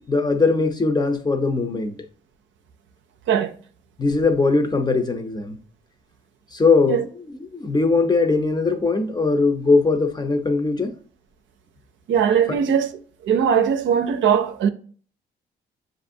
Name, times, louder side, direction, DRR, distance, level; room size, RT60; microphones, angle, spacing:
voice 1, 0.0-1.9 4.0-5.6 6.5-10.9 12.5-12.6, left 3 dB, 20° left, 0.6 m, -20 dB
voice 2, 12.1-12.9 13.2-14.7, right 7 dB, 70° right, 0.5 m, -20 dB
6.7 x 2.6 x 2.7 m
cardioid pair, 90°, 20 cm